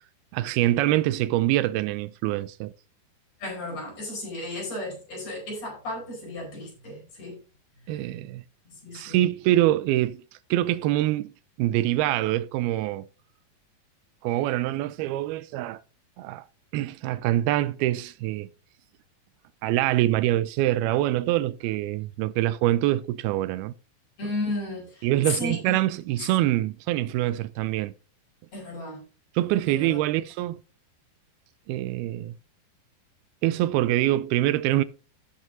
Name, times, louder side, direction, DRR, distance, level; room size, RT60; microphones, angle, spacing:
voice 1, 0.3-2.7 7.9-8.4 8.9-10.2 10.5-11.3 11.6-13.1 14.2-15.8 16.2-16.5 16.7-18.5 19.6-23.7 25.0-27.9 29.4-30.6 31.7-32.3 33.4-34.8, right 15 dB, 90° right, 2.5 m, -25 dB
voice 2, 3.4-7.4 7.9-8.1 8.6-9.2 24.2-25.8 28.5-29.1 29.7-30.0, left 2 dB, 45° left, 5.8 m, -34 dB
16.5 x 6.1 x 2.7 m
omnidirectional pair, 4.3 m